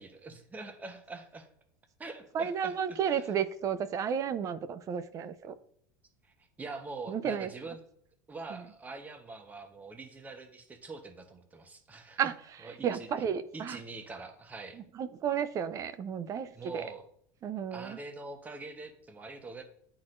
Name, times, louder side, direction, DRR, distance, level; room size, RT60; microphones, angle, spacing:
voice 1, 0.0-1.5 2.0-3.2 6.2-7.8 8.3-12.2 12.6-13.1 13.5-14.8 16.6-17.1 17.7-19.6, right 3 dB, 15° right, 0.9 m, -44 dB
voice 2, 2.3-5.5 7.1-7.5 8.5-8.6 12.2-13.8 14.7-16.9 17.4-18.0, right 8 dB, 35° right, 0.5 m, -33 dB
10.5 x 3.9 x 2.6 m
supercardioid pair, 120°, 10 cm